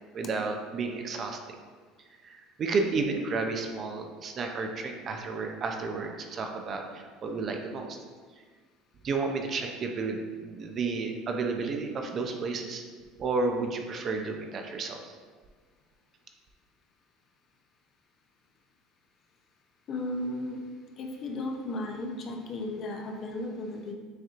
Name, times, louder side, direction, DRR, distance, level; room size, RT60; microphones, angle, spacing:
voice 1, 0.1-1.4 2.2-8.0 9.0-12.8 13.2-15.0, right 4 dB, 35° right, 4 dB, 0.4 m, -32 dB
voice 2, 19.9-20.6 21.0-23.9, left 2 dB, 40° left, 2 dB, 0.6 m, -35 dB
6.2 x 3.0 x 2.4 m, 1.5 s
cardioid pair, 130°, 0 cm